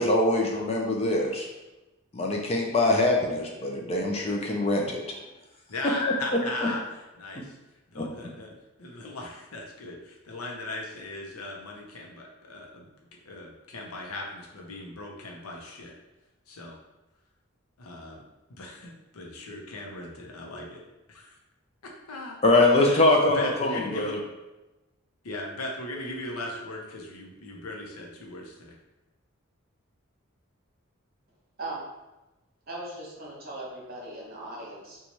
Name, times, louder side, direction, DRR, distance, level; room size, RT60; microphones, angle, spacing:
voice 1, 0.0-1.5 2.1-5.0 6.0-6.2 6.6-6.7 8.0-8.1 22.4-24.2, left 2 dB, 30° left, 0 dB, 0.4 m, -23 dB
voice 2, 5.7-6.8 7.2-7.6 7.9-8.5 8.8-12.9 13.2-15.9 16.5-16.8 17.8-18.2 18.5-20.8 21.1-21.3 22.1-22.4 22.8-23.1 23.3-24.1 25.2-28.8, left 2 dB, 90° left, -1 dB, 0.7 m, -38 dB
voice 3, 32.7-35.0, right 2 dB, 45° right, -5 dB, 1.0 m, -38 dB
3.0 x 2.3 x 4.0 m, 1.0 s
head